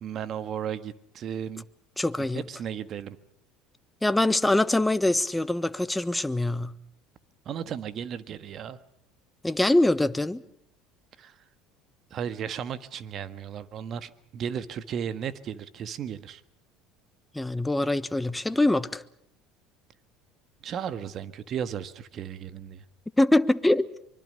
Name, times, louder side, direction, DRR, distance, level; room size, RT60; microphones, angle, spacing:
voice 1, 0.0-1.7 2.3-3.2 7.5-8.8 11.2-11.4 12.1-16.4 20.6-22.8, right 8 dB, 50° right, 1.6 m, -35 dB
voice 2, 2.0-2.4 4.0-6.7 9.4-10.4 17.3-19.0 23.2-23.9, left 1 dB, 10° left, 1.2 m, -23 dB
24.5 x 24.0 x 6.7 m
hypercardioid pair, 80°, 0 cm